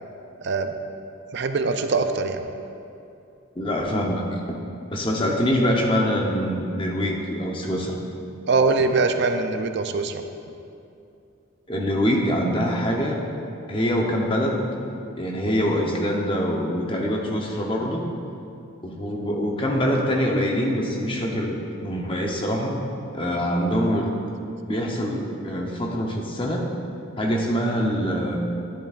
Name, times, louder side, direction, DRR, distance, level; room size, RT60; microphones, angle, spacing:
voice 1, 1.3-2.4 8.5-10.2, right 3 dB, 55° right, 7 dB, 0.4 m, -22 dB
voice 2, 3.6-4.4 4.9-8.0 11.7-13.2 13.7-14.7 15.2-18.0 18.8-22.8 23.1-24.1 24.7-26.7 27.2-28.4, equal, 25° left, 0 dB, 0.8 m, -24 dB
10.5 x 10.0 x 2.5 m, 2.6 s
head